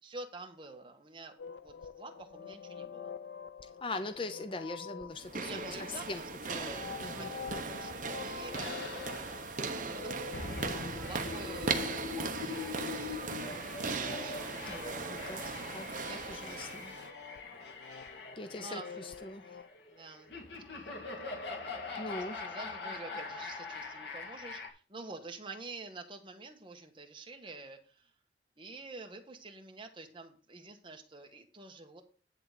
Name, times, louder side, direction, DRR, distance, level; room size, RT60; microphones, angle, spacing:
voice 1, 0.0-1.4 1.6-3.1 5.4-9.0 9.7-16.7 18.6-19.0 19.9-20.3 20.7-21.4 21.8-22.0 22.3-28.1 28.6-32.0, right 3 dB, 30° right, 4 dB, 1.4 m, -48 dB
sound 1, 1.4-19.7, left 6 dB, 85° left, 0.6 m, -48 dB
voice 2, 3.8-5.6 6.1-6.2 6.5-7.3 15.1-15.4 15.7-16.9 18.4-19.6 22.0-22.4, left 2 dB, 30° left, 8 dB, 0.6 m, -41 dB
sound 2, 5.1-17.1, right 4 dB, 45° right, 1.1 m, -38 dB
sound 3, 8.5-24.7, left 4 dB, 70° left, 2.2 m, -43 dB
10.5 x 3.9 x 6.7 m, 0.39 s
head